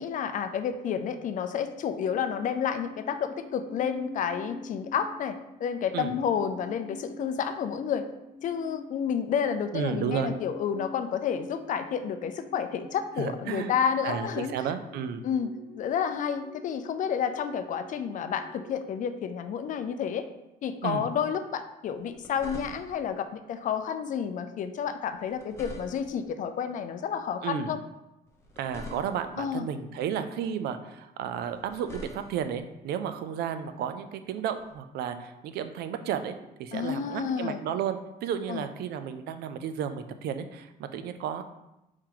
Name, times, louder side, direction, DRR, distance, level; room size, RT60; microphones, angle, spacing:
voice 1, 0.0-8.0 8.4-14.7 15.2-15.5 15.8-20.3 20.6-27.8 29.4-29.7 36.7-37.6 38.5-38.7, left 7 dB, 50° left, 9 dB, 0.4 m, -30 dB
sound 1, 1.6-18.7, left 1 dB, 70° left, 1.0 m, -47 dB
voice 2, 9.7-10.3 13.2-13.7 14.0-15.2 20.8-21.0 27.4-27.7 28.6-41.4, right 8 dB, 75° right, 10 dB, 0.4 m, -33 dB
sound 2, 21.9-23.1 25.1-26.3 28.3-29.4 31.4-32.6 34.6-34.7, left 2 dB, 15° left, 0.9 m, -45 dB
4.6 x 2.8 x 3.8 m, 0.93 s
cardioid pair, 110°, 17 cm